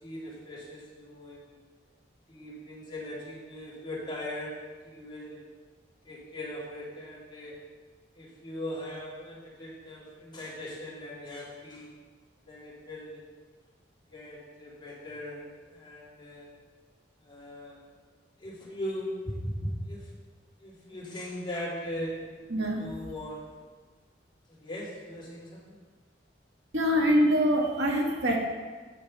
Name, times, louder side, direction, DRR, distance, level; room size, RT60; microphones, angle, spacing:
voice 1, 0.0-1.5 2.3-4.5 4.8-5.4 6.0-7.6 8.1-11.9 12.4-13.2 14.1-16.5 17.2-17.8 18.4-19.3 19.6-20.1 20.6-22.1 22.7-23.4 24.5-25.7, left 1 dB, 25° left, -8 dB, 3.0 m, -39 dB
voice 2, 22.5-23.0 26.7-28.4, equal, 85° right, -1 dB, 1.7 m, -24 dB
9.4 x 6.5 x 5.3 m, 1.4 s
head